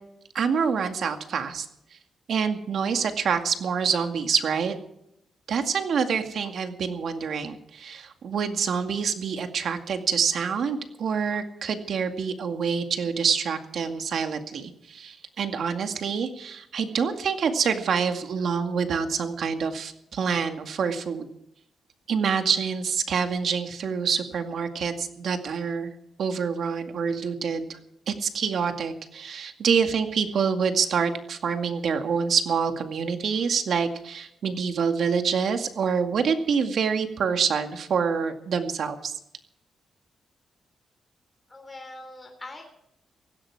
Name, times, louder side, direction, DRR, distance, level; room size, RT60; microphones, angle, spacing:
voice 1, 0.3-1.7 2.3-4.8 5.5-21.3 22.1-25.9 26.2-27.7 28.1-39.2, right 6 dB, 65° right, 6 dB, 2.1 m, -26 dB
voice 2, 41.5-42.6, left 2 dB, 20° left, 3 dB, 3.7 m, -42 dB
17.0 x 15.5 x 4.8 m, 0.76 s
cardioid pair, 115°, 0 cm